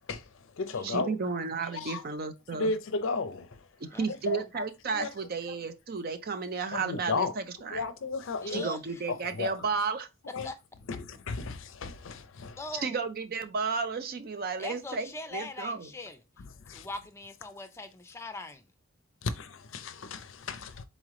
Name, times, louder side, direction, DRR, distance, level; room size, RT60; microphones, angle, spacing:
voice 1, 0.1-1.4 1.7-2.0 2.5-3.7 4.1-4.6 4.9-5.1 6.7-7.3 7.7-8.7 9.4-9.7 10.3-10.5 10.9-12.6 16.4-16.9 19.2-20.8, left 4 dB, 60° left, 0.5 m, -34 dB
voice 2, 0.8-2.7 3.8-7.8 8.5-10.1 12.8-15.9, right 4 dB, 45° right, 0.5 m, -33 dB
voice 3, 3.9-4.5 8.4-8.8 10.4-10.6 12.6-13.0 14.6-16.2 16.7-18.7, left 2 dB, 15° left, 0.5 m, -41 dB
4.0 x 3.2 x 3.7 m
head